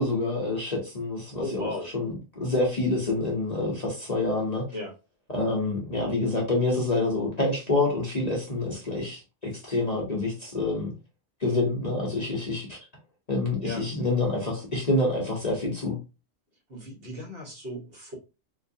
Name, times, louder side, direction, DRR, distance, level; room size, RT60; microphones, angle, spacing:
voice 1, 0.0-1.7 1.9-4.6 5.3-10.9 11.4-12.8 13.3-16.0, left 2 dB, 35° left, 0.9 m, -27 dB
voice 2, 1.4-1.9 4.7-4.9 13.6-13.9 16.7-18.1, left 2 dB, 50° right, 1.3 m, -35 dB
3.7 x 3.0 x 2.6 m
omnidirectional pair, 1.3 m